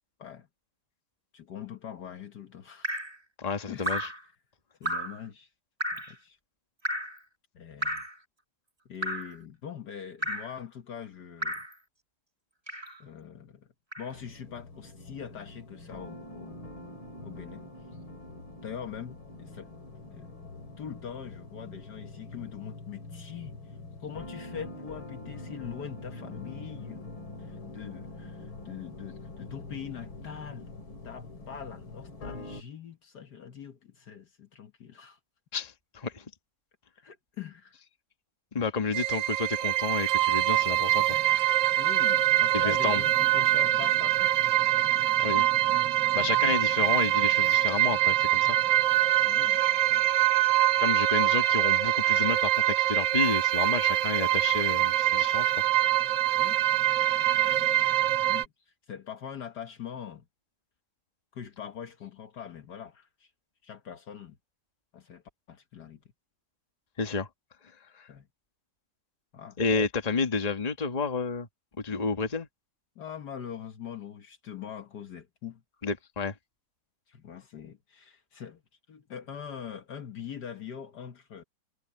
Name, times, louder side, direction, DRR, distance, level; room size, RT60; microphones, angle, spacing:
voice 1, 1.3-2.9 3.7-4.0 4.8-5.5 5.9-6.4 7.5-8.0 8.8-11.6 13.0-13.7 14.0-16.6 17.2-17.7 18.6-19.7 20.1-20.3 20.8-23.6 24.0-30.7 31.0-35.2 37.0-37.8 41.8-44.7 49.2-49.6 49.9-50.1 56.4-56.6 57.1-57.2 57.6-57.8 58.3-60.2 61.3-63.3 63.6-64.4 64.9-65.2 65.5-66.0 68.1-68.3 69.3-69.6 72.9-75.6 77.1-78.6 78.9-81.4, left 8 dB, 60° left, 1.7 m, -43 dB
Drip, 2.8-3.2 3.8-4.2 4.8-5.2 5.8-6.1 6.8-7.2 7.8-8.2 9.0-9.4 10.2-10.5 11.4-11.7 12.7-13.0 13.9-14.1, equal, 15° right, 1.6 m, -33 dB
voice 2, 3.4-4.1 35.5-36.2 38.5-41.0 42.6-43.0 45.2-45.5 46.1-48.6 50.8-55.5 67.0-67.3 68.0-68.1 69.6-71.5 71.8-72.5 75.8-76.3, left 4 dB, 20° left, 1.5 m, -30 dB
sound 1, 14.1-32.6, left 2 dB, 90° left, 3.7 m, -44 dB
sound 2, 38.9-58.5, right 14 dB, 70° right, 1.5 m, -24 dB
omnidirectional pair, 2.2 m